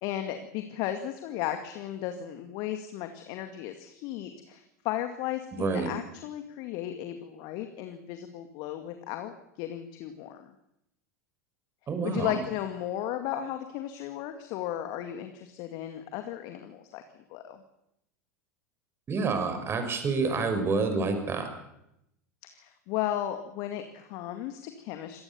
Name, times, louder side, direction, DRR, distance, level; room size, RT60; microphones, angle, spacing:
voice 1, 0.0-10.5 12.0-17.0 17.3-17.6 22.4-25.2, left 11 dB, 50° left, 7 dB, 2.2 m, -35 dB
voice 2, 5.5-5.9 11.9-12.3 19.1-21.5, right 4 dB, 30° right, 7 dB, 5.8 m, -28 dB
26.5 x 19.0 x 7.1 m, 0.83 s
figure-of-eight pair, 80°, 9 cm